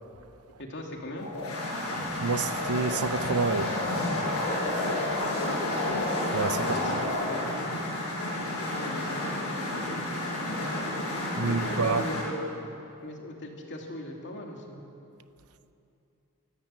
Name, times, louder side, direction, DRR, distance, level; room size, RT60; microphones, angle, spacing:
voice 1, 0.6-1.3 6.6-7.7 8.7-9.3 11.4-12.5 13.0-14.8, left 1 dB, 55° left, 2.8 m, -38 dB
sound 1, 1.2-12.3, left 1 dB, 90° left, 6.9 m, -30 dB
sound 2, 1.2-1.3 1.6-2.2 2.9-3.0 3.8-4.4 5.6-6.1 6.6-6.7 7.0-7.1, equal, 10° left, 6.9 m, -43 dB
voice 2, 2.2-3.7 6.3-6.7 11.4-12.0, right 4 dB, 85° right, 0.8 m, -28 dB
26.0 x 13.5 x 7.6 m
head